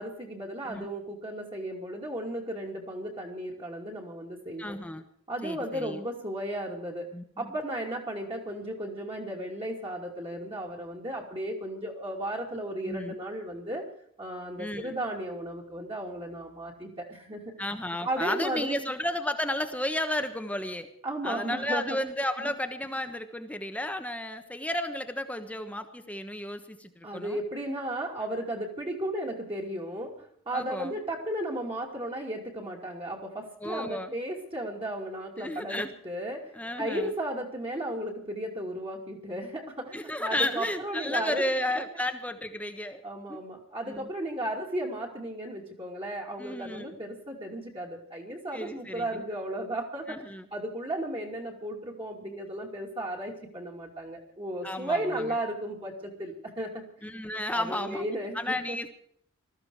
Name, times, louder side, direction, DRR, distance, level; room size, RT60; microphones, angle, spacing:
voice 1, 0.0-4.8 5.3-7.1 7.4-13.8 14.2-17.6 18.0-18.9 21.0-22.0 27.0-41.4 43.0-50.2 50.5-56.8 57.5-58.8, right 1 dB, 25° right, -1 dB, 2.6 m, -35 dB
voice 2, 4.6-5.0 5.4-6.0 7.1-7.5 12.9-13.2 14.6-14.9 17.6-20.9 21.2-27.4 30.5-30.9 33.6-34.1 35.4-35.9 36.5-37.1 39.9-43.0 43.3-43.4 43.9-44.1 46.4-47.0 48.5-49.2 50.1-50.5 54.6-55.3 57.0-58.1 58.3-58.9, left 1 dB, 5° left, 7 dB, 1.2 m, -33 dB
20.5 x 14.0 x 4.8 m, 0.65 s
head